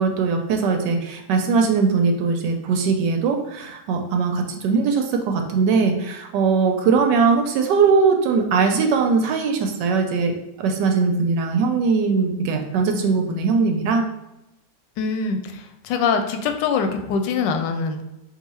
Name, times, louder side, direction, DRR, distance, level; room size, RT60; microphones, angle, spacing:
voice 1, 0.0-10.3 10.6-14.1, right 5 dB, 90° right, 4 dB, 1.3 m, -20 dB
voice 2, 15.0-18.0, left 5 dB, 90° left, 6 dB, 1.2 m, -23 dB
3.8 x 2.5 x 4.2 m, 0.91 s
omnidirectional pair, 1.9 m